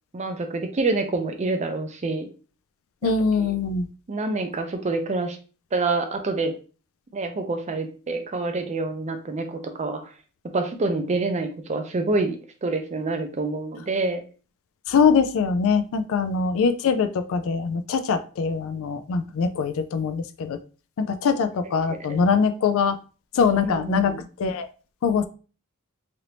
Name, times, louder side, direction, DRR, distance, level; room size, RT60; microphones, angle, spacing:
voice 1, 0.1-2.3 3.0-3.1 3.4-3.5 4.1-5.4 5.7-6.5 7.1-10.0 10.5-14.2 21.9-22.2 23.6-24.2, right 3 dB, 30° right, 6 dB, 0.5 m, -27 dB
voice 2, 3.0-3.9 14.9-20.6 21.0-23.0 23.3-24.7 25.0-25.3, left 5 dB, 65° left, 10 dB, 0.3 m, -23 dB
3.3 x 2.6 x 2.9 m, 0.37 s
head